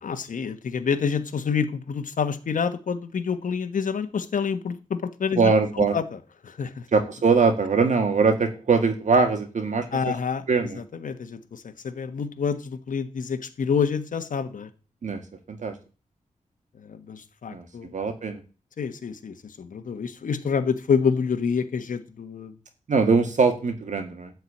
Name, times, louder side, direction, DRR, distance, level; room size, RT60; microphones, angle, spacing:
voice 1, 0.0-6.9 9.9-10.4 10.7-14.7 16.8-17.9 18.8-22.5, left 6 dB, 80° left, 7 dB, 1.3 m, -28 dB
voice 2, 5.4-5.9 6.9-10.1 10.5-10.8 15.0-15.2 15.5-15.7 17.5-17.6 17.9-18.4 22.9-24.3, right 4 dB, 65° right, 5 dB, 1.8 m, -22 dB
13.0 x 4.8 x 8.5 m, 0.34 s
wide cardioid pair, 165°, 13 cm